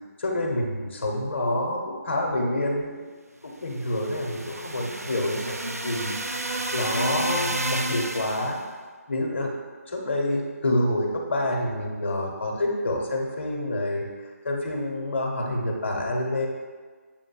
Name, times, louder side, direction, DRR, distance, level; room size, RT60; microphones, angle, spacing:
voice 1, 0.2-3.0 3.4-5.6 5.8-6.1 6.7-8.6 9.1-9.5 9.9-16.5, left 1 dB, 50° left, 0 dB, 0.7 m, -27 dB
sound 1, 3.7-8.6, right 1 dB, 85° right, 0.4 m, -31 dB
7.1 x 2.5 x 2.2 m, 1.5 s
figure-of-eight pair, 150°, 8 cm